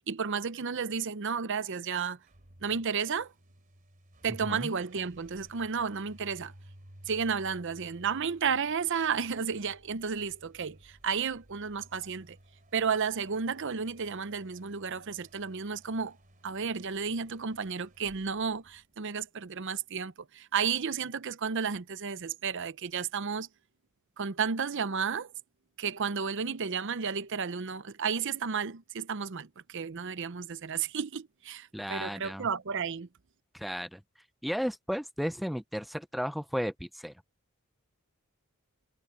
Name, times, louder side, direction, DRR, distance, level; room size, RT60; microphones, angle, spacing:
voice 1, 0.1-2.2 2.6-3.3 4.2-6.5 7.1-12.4 12.7-16.2 16.4-23.5 24.2-25.3 25.8-33.1, right 6 dB, 55° right, 0.7 m, -32 dB
sound 1, 2.0-19.5, equal, 40° right, 3.2 m, -57 dB
voice 2, 31.7-32.5 33.5-34.0 34.4-37.1, equal, ahead, 0.4 m, -34 dB
head